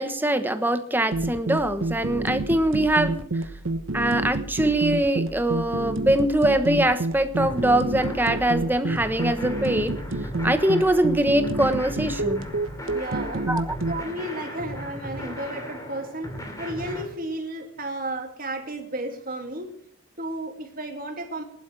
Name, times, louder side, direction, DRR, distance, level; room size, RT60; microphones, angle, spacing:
voice 1, 0.0-3.2 3.9-9.9 10.4-12.5 13.5-13.8, right 1 dB, 10° right, 9 dB, 1.0 m, -23 dB
sound 1, 1.1-14.0, right 2 dB, 75° right, 1.2 m, -29 dB
sound 2, 7.4-17.0, equal, 15° left, 2.7 m, -37 dB
voice 2, 12.9-13.5 13.9-19.7 20.2-21.4, right 1 dB, 45° right, 4 dB, 2.5 m, -33 dB
20.0 x 11.5 x 3.4 m, 0.66 s
head